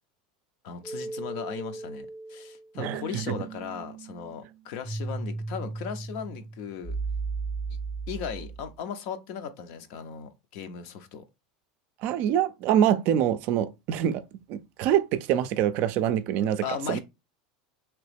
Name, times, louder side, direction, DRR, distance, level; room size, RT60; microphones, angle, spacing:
voice 1, 0.6-7.0 8.1-11.2 16.6-17.0, left 7 dB, 60° left, 0.6 m, -37 dB
sound 1, 0.8-8.7, right 4 dB, ahead, 0.5 m, -36 dB
voice 2, 12.0-14.2 14.5-17.0, right 10 dB, 55° right, 0.4 m, -25 dB
2.9 x 2.9 x 3.3 m
supercardioid pair, 130°, 4 cm